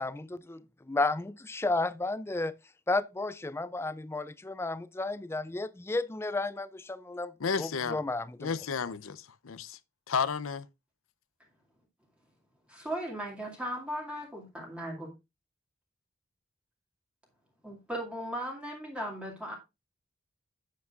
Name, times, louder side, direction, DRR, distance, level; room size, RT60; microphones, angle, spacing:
voice 1, 0.0-2.5 2.9-8.5, left 2 dB, 15° left, 0.4 m, -33 dB
voice 2, 7.4-8.0 8.4-9.8 10.1-10.6, left 6 dB, 85° left, 0.6 m, -32 dB
voice 3, 12.7-15.1 17.6-19.5, equal, 5° right, 2.3 m, -37 dB
9.4 x 8.4 x 2.4 m
head